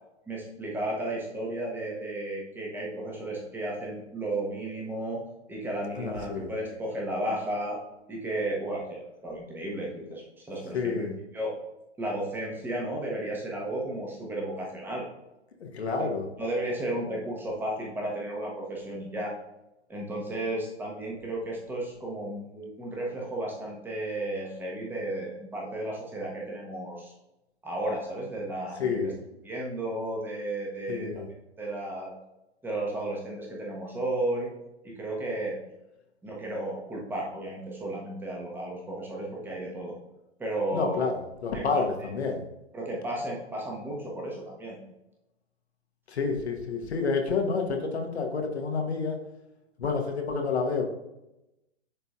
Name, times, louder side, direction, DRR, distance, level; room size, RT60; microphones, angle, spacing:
voice 1, 0.3-5.2 5.5-7.8 8.1-11.1 11.3-11.5 12.0-15.1 16.4-19.3 19.9-27.1 27.6-29.0 29.4-31.2 31.6-32.1 32.6-34.5 34.8-35.6 36.2-39.9 40.4-41.0 41.5-41.8 42.7-44.8, right 1 dB, 5° right, -2 dB, 1.0 m, -33 dB
voice 2, 6.0-6.5 10.7-11.1 15.6-16.3 28.8-29.2 30.9-31.3 40.7-41.1 41.4-42.4 46.1-49.2 49.8-50.9, left 4 dB, 65° left, 2 dB, 1.2 m, -29 dB
10.0 x 3.9 x 2.4 m, 0.92 s
figure-of-eight pair, 125°, 35 cm